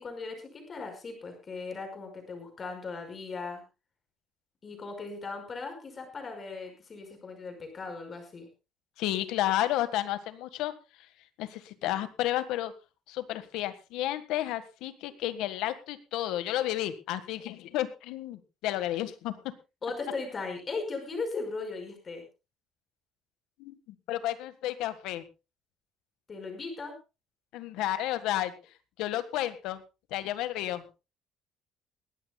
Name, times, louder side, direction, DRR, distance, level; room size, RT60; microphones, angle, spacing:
voice 1, 0.0-3.6 4.6-8.5 19.8-22.2 26.3-26.9, left 4 dB, 25° left, 5 dB, 5.4 m, -38 dB
voice 2, 9.0-10.7 11.4-12.7 13.1-19.4 23.6-25.2 27.5-28.5 29.0-29.8 30.1-31.0, left 13 dB, 75° left, 12 dB, 1.6 m, -32 dB
21.0 x 16.0 x 2.3 m, 0.28 s
cardioid pair, 165°, 0 cm